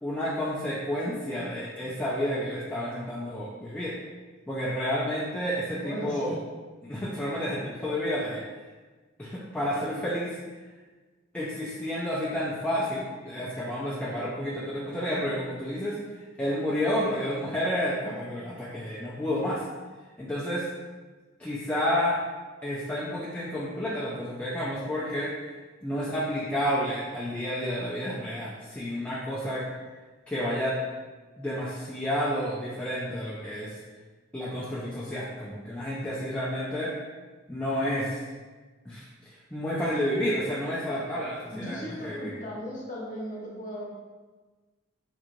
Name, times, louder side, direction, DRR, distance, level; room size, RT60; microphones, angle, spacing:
voice 1, 0.0-3.9 4.5-6.4 6.8-8.4 9.2-10.4 11.3-16.0 16.4-19.6 20.2-20.7 21.4-22.2 22.6-25.3 25.8-29.7 30.3-30.8 31.4-33.7 34.3-36.9 37.5-38.2 38.9-39.1 39.5-42.3, equal, 5° left, -8 dB, 0.3 m, -30 dB
voice 2, 5.8-6.4 41.5-43.9, equal, 35° left, -6 dB, 0.9 m, -37 dB
3.6 x 3.0 x 2.5 m, 1.3 s
head